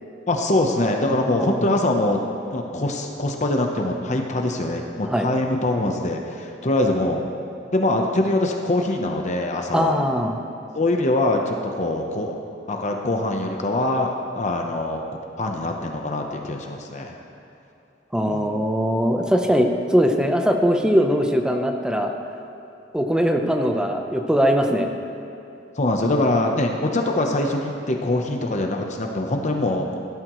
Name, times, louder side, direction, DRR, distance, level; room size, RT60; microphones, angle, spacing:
voice 1, 0.3-2.2 2.5-7.2 7.7-10.0 10.7-12.4 12.7-15.0 15.4-17.2 18.2-18.6 25.8-30.0, left 1 dB, 40° left, 2 dB, 0.8 m, -23 dB
voice 2, 9.7-10.4 18.1-22.1 22.9-24.9, equal, 5° right, 4 dB, 0.7 m, -21 dB
15.5 x 12.5 x 3.1 m, 2.9 s
head